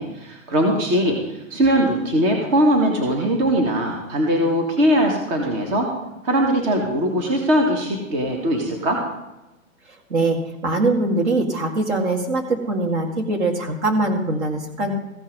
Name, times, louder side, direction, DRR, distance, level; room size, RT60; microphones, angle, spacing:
voice 1, 0.0-5.9 6.2-9.0, equal, 35° right, 2 dB, 1.9 m, -20 dB
voice 2, 10.1-14.9, right 2 dB, 55° right, 2 dB, 2.2 m, -22 dB
15.0 x 5.5 x 5.5 m, 0.98 s
hypercardioid pair, 135°, 42 cm